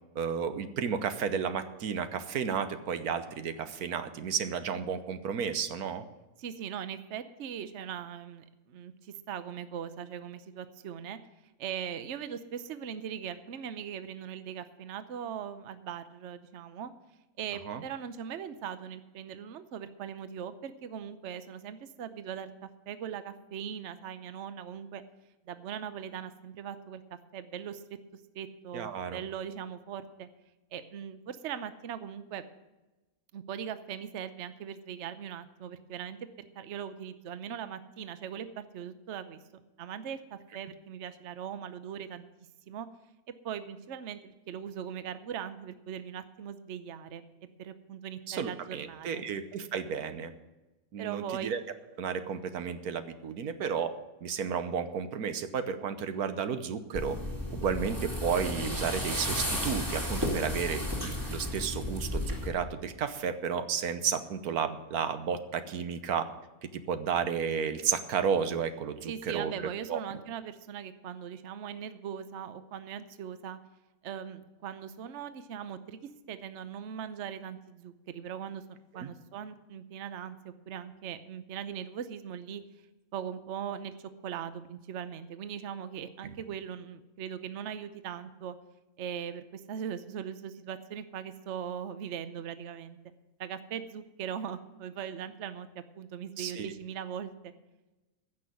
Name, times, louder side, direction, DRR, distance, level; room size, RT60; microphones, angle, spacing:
voice 1, 0.1-6.0 17.7-17.8 28.7-29.2 48.3-50.3 50.9-51.6 52.0-53.9 54.2-57.2 57.5-66.3 66.7-69.5 69.9-70.0 78.9-79.1 96.4-96.7, right 7 dB, 85° right, 10 dB, 1.4 m, -32 dB
voice 2, 6.4-11.2 11.6-16.9 17.4-22.5 22.9-25.0 25.5-27.0 27.3-27.8 28.3-30.3 30.7-32.4 33.3-36.2 36.6-39.4 39.8-42.3 42.7-42.9 43.4-47.2 47.6-49.2 51.0-51.5 69.0-73.6 74.0-76.0 76.3-82.6 83.1-83.9 84.2-88.6 89.0-93.0 93.4-95.7 96.0-97.5, right 8 dB, 55° right, 11 dB, 1.0 m, -40 dB
sound 1, 56.9-62.5, left 1 dB, 15° right, 2.4 m, -33 dB
15.5 x 6.4 x 7.8 m, 1.1 s
omnidirectional pair, 1.5 m